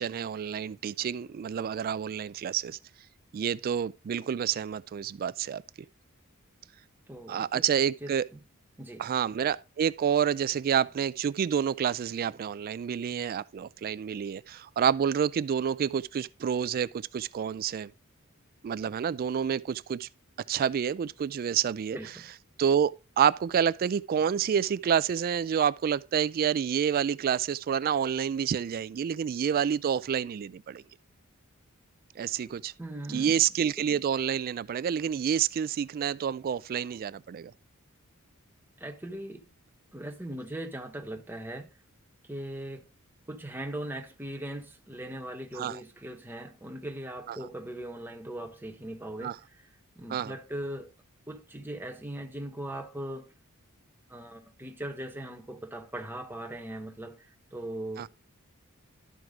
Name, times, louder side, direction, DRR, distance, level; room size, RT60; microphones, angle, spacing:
voice 1, 0.0-2.8 3.3-5.6 7.3-8.3 9.0-17.9 18.6-20.1 20.5-22.0 22.6-30.8 32.2-32.7 33.1-37.5 45.6-45.8 47.3-47.4 49.2-49.3 50.1-50.3 58.0-58.1, right 8 dB, 40° right, 0.3 m, -28 dB
voice 2, 7.1-7.6 8.0-8.4 8.8-9.1 21.9-22.3 32.8-33.3 33.8-34.0 38.8-39.5 39.9-41.7 42.2-42.8 43.3-49.7 50.0-50.9 51.3-53.3 54.1-58.1, right 1 dB, 10° right, 1.1 m, -39 dB
12.0 x 4.6 x 3.6 m
head